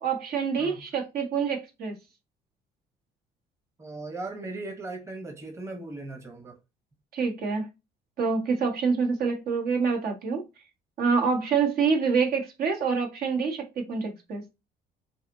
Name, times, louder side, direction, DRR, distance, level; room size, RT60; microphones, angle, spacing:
voice 1, 0.0-2.0 7.1-7.7 8.2-10.4 11.0-14.4, right 5 dB, 65° right, 1.4 m, -26 dB
voice 2, 3.8-6.6, right 2 dB, 15° right, 1.0 m, -38 dB
5.6 x 2.8 x 2.7 m
cardioid pair, 110°, 17 cm